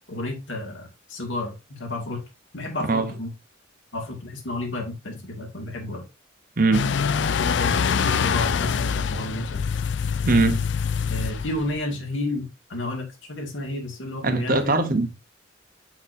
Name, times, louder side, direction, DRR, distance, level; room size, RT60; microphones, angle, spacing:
voice 1, 0.1-2.2 2.5-3.3 3.9-6.0 7.4-9.7 11.1-14.7, left 1 dB, 80° left, 2.0 m, -31 dB
voice 2, 6.6-6.9 10.2-10.6 14.2-15.1, right 3 dB, 45° right, 0.9 m, -21 dB
sound 1, 6.7-11.8, left 6 dB, 65° left, 0.4 m, -24 dB
6.0 x 5.9 x 2.7 m
head